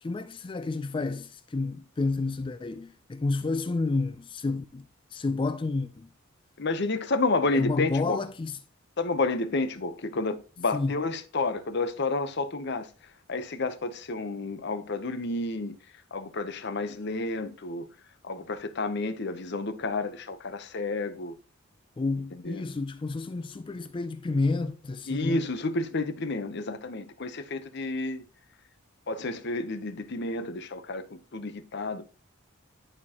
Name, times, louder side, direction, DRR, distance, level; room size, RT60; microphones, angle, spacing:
voice 1, 0.0-4.8 5.1-6.1 7.5-8.6 10.7-11.0 22.0-25.4, left 3 dB, 25° left, 0.3 m, -30 dB
voice 2, 6.6-8.2 9.0-12.9 13.3-15.7 16.1-17.9 18.2-21.4 22.4-22.6 25.1-28.2 29.1-32.0, left 3 dB, 50° left, 0.8 m, -30 dB
11.0 x 4.5 x 2.9 m
head